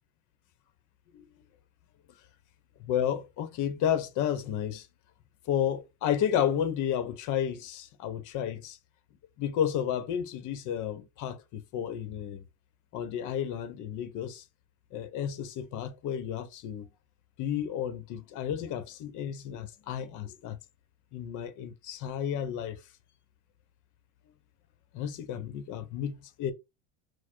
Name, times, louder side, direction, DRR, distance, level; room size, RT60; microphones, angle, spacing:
voice 1, 2.9-4.9 5.5-8.8 9.4-12.4 12.9-14.4 14.9-16.9 17.4-20.6 21.1-22.8 24.9-26.5, left 9 dB, 50° left, 0.9 m, -32 dB
4.4 x 2.2 x 4.5 m
supercardioid pair, 125°, 39 cm